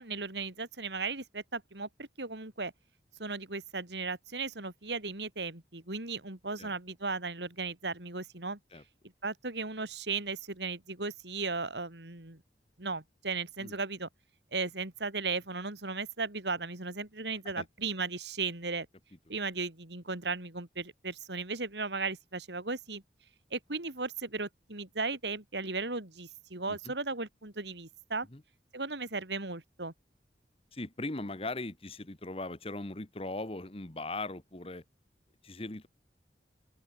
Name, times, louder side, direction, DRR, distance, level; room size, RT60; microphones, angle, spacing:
voice 1, 0.0-2.7 3.2-8.6 9.2-12.4 12.8-14.1 14.5-18.9 19.3-23.0 23.5-28.3 28.7-29.9, right 4 dB, 80° right, 3.3 m, -36 dB
voice 2, 30.7-34.8 35.4-35.9, left 2 dB, 35° left, 1.4 m, -39 dB
open air
head